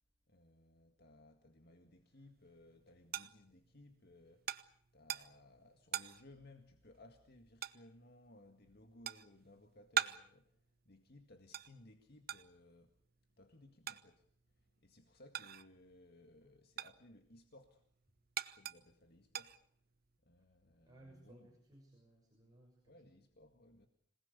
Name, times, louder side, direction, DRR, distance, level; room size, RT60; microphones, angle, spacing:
voice 1, 0.3-4.6 4.9-13.0 13.4-17.8 18.5-19.6 20.2-21.5 22.9-23.9, left 1 dB, 55° left, 2.0 m, -62 dB
sound 1, 2.1-15.9 16.2-20.2, right 10 dB, 50° right, 1.0 m, -45 dB
voice 2, 20.8-23.0, right 1 dB, 20° right, 6.3 m, -61 dB
26.5 x 19.0 x 8.3 m
head